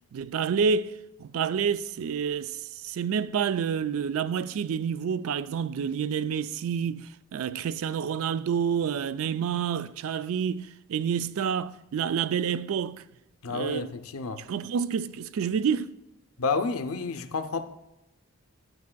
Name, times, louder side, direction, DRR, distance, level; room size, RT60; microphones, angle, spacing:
voice 1, 0.1-13.0 13.5-13.9 14.4-15.9, right 7 dB, 75° right, 0.3 m, -28 dB
voice 2, 13.4-14.4 16.4-17.7, left 4 dB, 80° left, 0.6 m, -30 dB
11.0 x 9.3 x 2.3 m
head